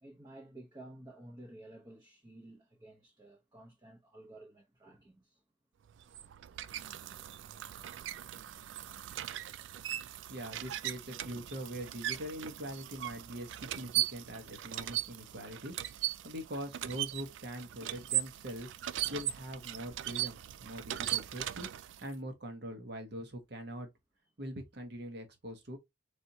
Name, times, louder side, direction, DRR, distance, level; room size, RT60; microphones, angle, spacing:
voice 1, 0.0-5.4, right 1 dB, 20° right, 0.8 m, -53 dB
sound 1, 5.9-22.1, right 14 dB, 85° right, 0.3 m, -39 dB
voice 2, 10.3-18.7 19.1-21.7 22.0-23.9 24.4-25.8, equal, 65° right, 1.1 m, -43 dB
4.1 x 3.5 x 2.7 m
head